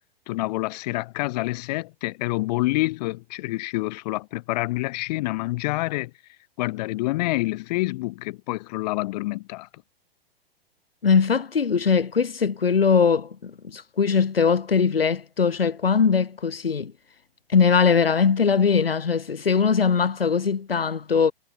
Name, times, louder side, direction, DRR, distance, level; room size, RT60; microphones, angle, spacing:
voice 1, 0.3-6.1 6.6-9.7, left 20 dB, 45° left, 2.6 m, -27 dB
voice 2, 11.0-16.9 17.5-21.3, left 6 dB, 70° left, 7.2 m, -21 dB
figure-of-eight pair, 105°, 30 cm